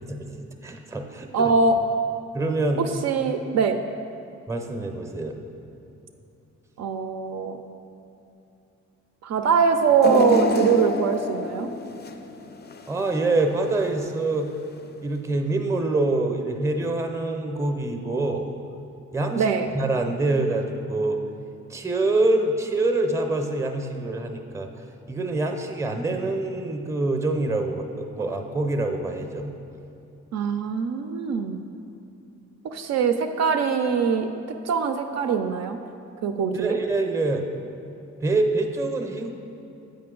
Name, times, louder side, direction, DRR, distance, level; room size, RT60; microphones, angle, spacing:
voice 1, 0.1-1.5 2.3-2.9 4.5-5.4 12.9-14.5 15.0-18.5 19.1-21.2 21.7-24.7 25.1-29.5 36.5-37.5 38.2-39.3, right 2 dB, 10° right, 5 dB, 0.6 m, -25 dB
voice 2, 1.3-1.8 3.0-3.8 6.8-7.6 9.2-11.7 19.4-19.7 30.3-31.6 32.6-34.3 34.7-35.8 36.2-36.8, right 6 dB, 60° right, 6 dB, 0.4 m, -22 dB
sound 1, 10.0-13.2 13.6-13.7 14.8-14.9, left 3 dB, 35° left, 0.4 m, -26 dB
7.7 x 5.3 x 3.7 m, 2.7 s
cardioid pair, 90°, 30 cm